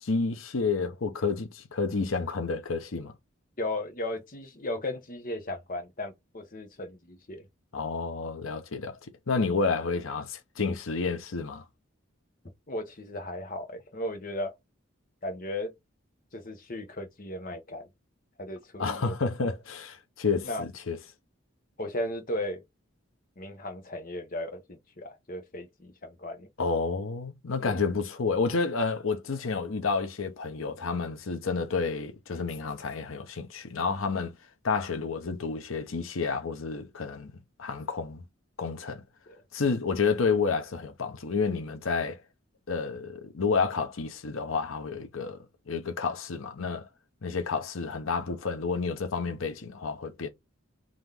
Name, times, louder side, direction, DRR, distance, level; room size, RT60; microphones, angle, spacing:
voice 1, 0.0-3.1 7.7-9.0 9.3-11.6 18.8-21.0 26.6-34.3 34.6-37.3 37.6-38.2 38.6-39.0 39.5-42.2 42.7-45.4 45.7-46.8 47.2-50.3, left 4 dB, 90° left, 0.8 m, -30 dB
voice 2, 3.6-7.4 12.7-14.5 15.2-15.7 16.3-17.9 18.4-19.2 20.4-20.6 21.8-22.6 23.4-26.5 27.6-27.8 39.3-39.4, left 1 dB, 45° left, 1.0 m, -36 dB
3.8 x 3.0 x 3.4 m
head